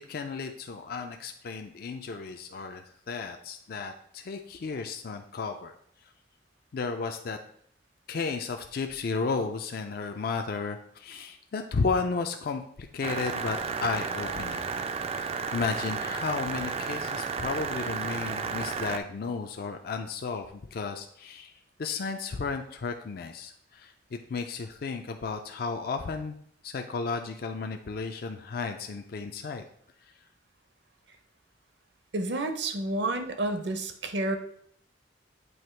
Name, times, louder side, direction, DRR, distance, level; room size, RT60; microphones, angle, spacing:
voice 1, 0.1-5.7 6.7-7.4 8.1-14.7 15.1-21.5 21.8-26.4 26.6-29.6 30.0-30.1, left 4 dB, 50° left, 5 dB, 0.4 m, -33 dB
sound 1, 13.0-19.0, right 5 dB, 35° right, 0.3 m, -33 dB
voice 2, 32.1-34.4, right 2 dB, 65° right, 8 dB, 0.7 m, -30 dB
7.8 x 2.8 x 4.4 m, 0.65 s
head